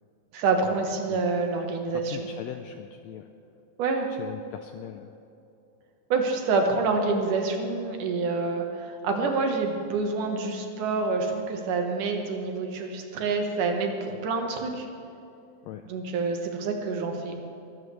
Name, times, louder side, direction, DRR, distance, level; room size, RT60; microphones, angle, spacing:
voice 1, 0.3-2.2 3.8-4.1 6.1-14.9 15.9-17.4, right 4 dB, 85° right, 3 dB, 2.9 m, -27 dB
voice 2, 1.9-3.3 4.1-5.1 15.6-15.8, left 10 dB, 90° left, 7 dB, 1.5 m, -40 dB
22.5 x 13.0 x 3.3 m, 2.7 s
omnidirectional pair, 3.6 m